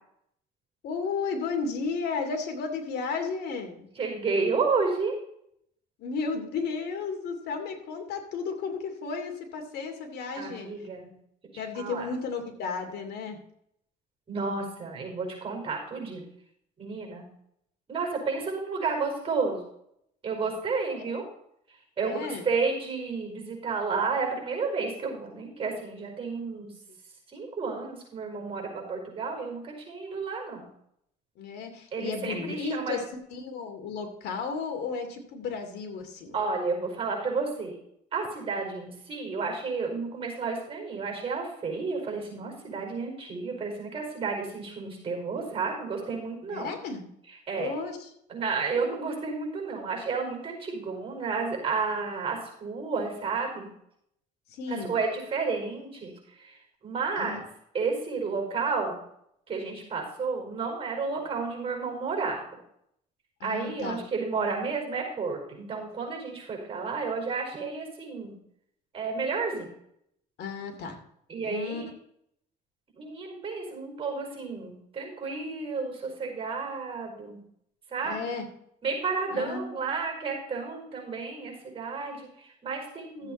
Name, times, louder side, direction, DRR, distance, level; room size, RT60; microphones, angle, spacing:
voice 1, 0.8-3.9 6.0-10.7 11.6-13.4 21.1-21.2 22.0-22.5 26.9-27.0 31.4-33.0 33.3-36.3 46.5-47.1 47.6-48.1 54.5-55.0 57.2-57.4 63.4-64.0 70.4-71.0 71.4-71.8 78.0-78.5 79.3-79.8 83.2-83.3, left 5 dB, 75° left, 5 dB, 2.6 m, -33 dB
voice 2, 3.9-5.1 10.4-11.1 11.5-12.1 14.3-16.2 16.8-17.3 17.9-19.6 20.2-21.2 22.0-26.7 27.3-30.7 31.9-33.0 36.3-37.8 38.1-46.7 47.5-47.7 48.3-53.7 54.7-56.6 56.8-57.4 57.7-59.0 59.5-62.4 63.4-68.3 68.9-69.7 71.3-71.8 73.0-77.4 77.9-78.3 78.8-83.3, right 4 dB, 35° right, 2 dB, 5.1 m, -31 dB
13.5 x 8.2 x 4.3 m, 0.72 s
cardioid pair, 110°, 17 cm